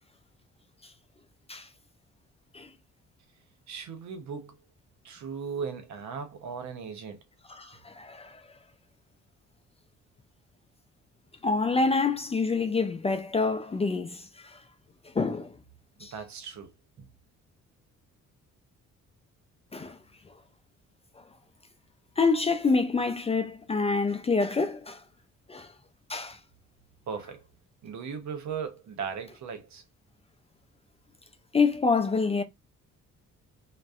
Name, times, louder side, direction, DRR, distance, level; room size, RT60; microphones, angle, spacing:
voice 1, 3.7-4.6 5.0-7.2 16.0-16.7 17.0-17.1 27.1-27.4 27.8-29.8, right 6 dB, 70° right, 0.8 m, -37 dB
voice 2, 7.5-8.4 11.4-14.6 15.1-15.6 16.0-16.1 19.7-20.0 21.2-21.3 22.2-25.0 25.5-25.7 26.1-26.4 31.5-32.4, left 4 dB, 20° left, 0.3 m, -27 dB
2.5 x 2.1 x 2.4 m
cardioid pair, 90°, 30 cm